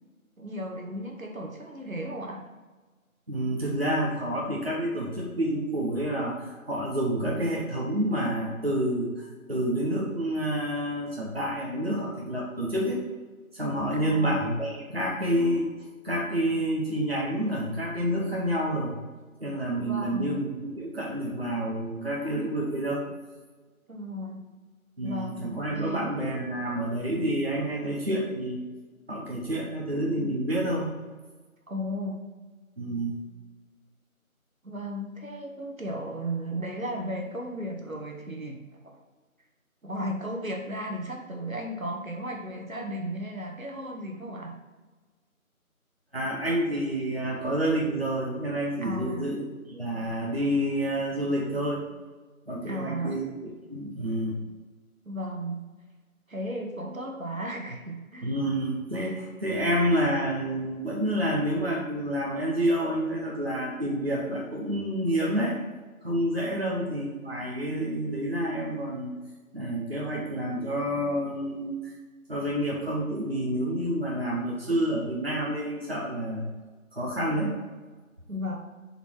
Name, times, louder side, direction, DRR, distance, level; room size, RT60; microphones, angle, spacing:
voice 1, 0.4-2.4 13.9-14.4 19.8-20.4 23.9-24.4 25.0-26.1 31.7-32.2 34.6-38.9 39.8-44.5 48.8-49.3 52.7-53.2 55.0-55.6 56.3-58.3 66.5-66.9 78.3-78.6, equal, 65° right, 1 dB, 1.4 m, -35 dB
voice 2, 3.3-13.0 13.5-15.7 16.0-18.9 19.4-23.0 25.0-28.6 29.1-30.9 32.8-33.2 46.1-51.8 52.5-54.4 58.2-65.6 66.0-69.1 69.5-71.9 72.3-76.5 76.9-77.5, right 1 dB, 45° right, -4 dB, 1.2 m, -28 dB
6.9 x 4.3 x 4.6 m, 1.3 s
figure-of-eight pair, 180°, 43 cm